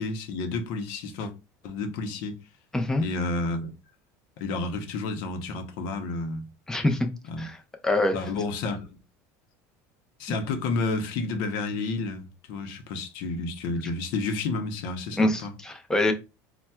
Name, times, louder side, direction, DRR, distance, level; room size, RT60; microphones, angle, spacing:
voice 1, 0.0-1.3 1.6-2.3 3.0-3.7 4.4-6.5 7.3-7.4 8.1-9.0 10.2-15.5, left 3 dB, 70° left, 0.7 m, -30 dB
voice 2, 2.7-3.0 6.7-7.1 7.4-7.6 7.8-8.2 15.2-16.1, left 2 dB, 5° left, 0.5 m, -24 dB
4.1 x 2.2 x 2.2 m
supercardioid pair, 120°, 8 cm